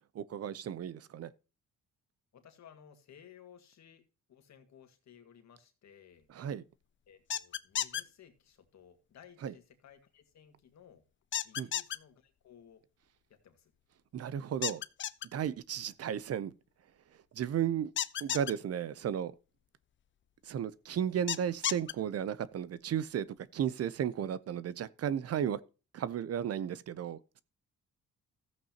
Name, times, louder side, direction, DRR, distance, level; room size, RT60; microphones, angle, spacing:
voice 1, 0.1-1.3 6.3-6.6 9.4-9.5 11.6-11.7 14.1-14.8 15.3-16.5 17.3-17.9 18.2-19.3 20.4-23.3 23.5-25.6 25.9-27.4, right 9 dB, 55° right, 0.7 m, -34 dB
voice 2, 2.3-6.3 7.1-11.0 11.4-12.8 13.3-13.7 15.9-16.0, left 8 dB, 65° left, 1.9 m, -58 dB
sound 1, 7.3-8.0 11.3-12.0 14.6-15.3 18.0-18.5 21.3-21.9, left 10 dB, 40° left, 0.5 m, -32 dB
14.0 x 8.2 x 2.9 m
cardioid pair, 90°, 30 cm